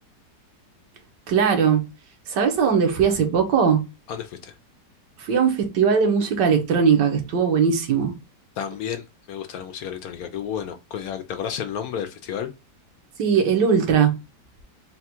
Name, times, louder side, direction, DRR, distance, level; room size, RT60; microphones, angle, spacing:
voice 1, 1.3-1.8 2.3-3.8 5.2-8.1 13.2-14.1, right 6 dB, 80° right, 1.6 m, -19 dB
voice 2, 4.1-4.5 8.6-12.5, left 8 dB, 70° left, 0.9 m, -32 dB
4.1 x 2.3 x 4.2 m
omnidirectional pair, 1.8 m